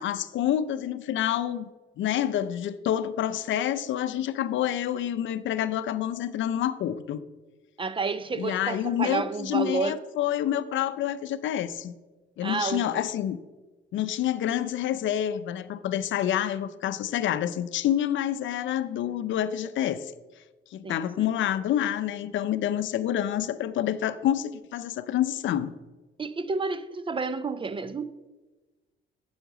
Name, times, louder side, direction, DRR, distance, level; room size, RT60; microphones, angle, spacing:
voice 1, 0.0-1.7 2.0-7.2 8.4-11.9 12.4-13.4 13.9-20.1 20.7-25.7, left 11 dB, 75° left, 0.6 m, -28 dB
voice 2, 7.8-10.0 12.4-13.0 20.8-21.3 26.2-28.1, right 4 dB, 25° right, 0.5 m, -30 dB
8.9 x 7.8 x 3.9 m
cardioid pair, 90°, 20 cm